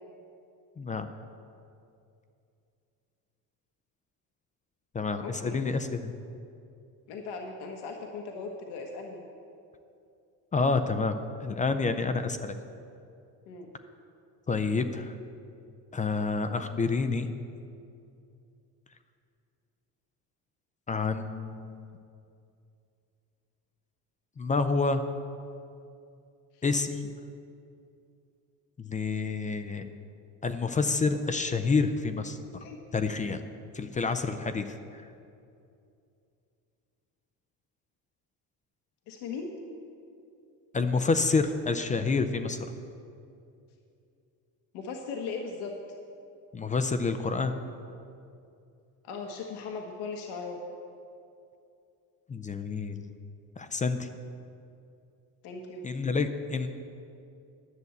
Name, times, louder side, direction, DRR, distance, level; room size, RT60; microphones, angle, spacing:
voice 1, 0.8-1.1 4.9-6.1 10.5-11.1 11.4-12.5 14.5-15.1 15.9-17.3 20.9-22.0 24.4-25.0 26.6-27.1 28.8-29.9 30.4-32.4 32.9-33.4 33.7-34.7 40.7-42.6 46.5-47.5 52.3-53.1 53.6-54.1 55.8-56.7, left 4 dB, 20° left, 9 dB, 0.4 m, -28 dB
voice 2, 5.2-5.6 7.1-9.2 13.5-13.7 26.5-26.6 32.6-32.8 39.1-39.5 44.7-45.8 49.0-50.6 55.4-55.8, left 4 dB, 80° left, 2 dB, 1.3 m, -38 dB
11.0 x 6.9 x 7.9 m, 2.6 s
cardioid pair, 130°, 39 cm